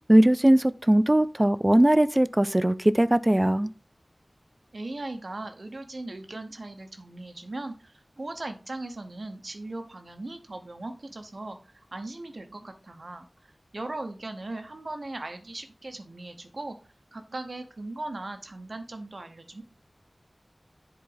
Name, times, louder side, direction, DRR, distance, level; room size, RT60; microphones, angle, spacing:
voice 1, 0.1-3.7, right 1 dB, 25° right, 0.3 m, -20 dB
voice 2, 4.7-13.3 13.7-16.8 17.1-19.6, right 2 dB, 65° right, 0.8 m, -38 dB
7.6 x 4.0 x 3.9 m
wide cardioid pair, 50°, 0 cm